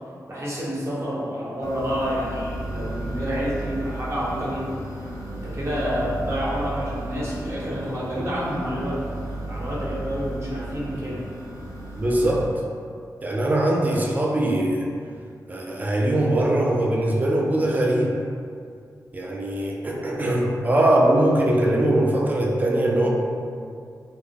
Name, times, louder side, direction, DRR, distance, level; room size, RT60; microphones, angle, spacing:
voice 1, 0.3-4.8 5.3-9.0 9.4-11.2, equal, 40° right, -7 dB, 0.8 m, -28 dB
sound 1, 1.6-12.4, right 1 dB, 55° left, 0.5 m, -34 dB
voice 2, 12.0-12.5 13.2-14.9 15.5-18.1 19.1-23.1, right 1 dB, 25° right, -1 dB, 0.3 m, -21 dB
2.3 x 2.0 x 3.3 m, 2.3 s
wide cardioid pair, 90°, 7 cm